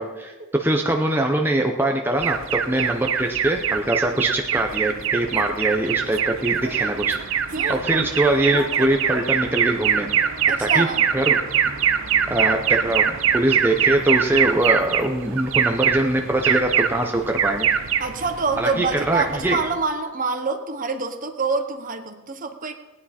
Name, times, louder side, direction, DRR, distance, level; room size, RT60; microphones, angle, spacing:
voice 1, 0.0-0.3 0.6-7.4 7.7-10.1 10.6-10.9 11.1-11.4 12.3-17.7 18.6-19.6, right 1 dB, 10° right, 2 dB, 0.7 m, -22 dB
Alarm, 2.2-19.8, right 8 dB, 70° right, 0.7 m, -23 dB
voice 2, 7.5-7.8 10.5-11.1 18.0-22.7, right 4 dB, 40° right, 6 dB, 1.0 m, -26 dB
18.5 x 9.6 x 4.3 m, 1.1 s
head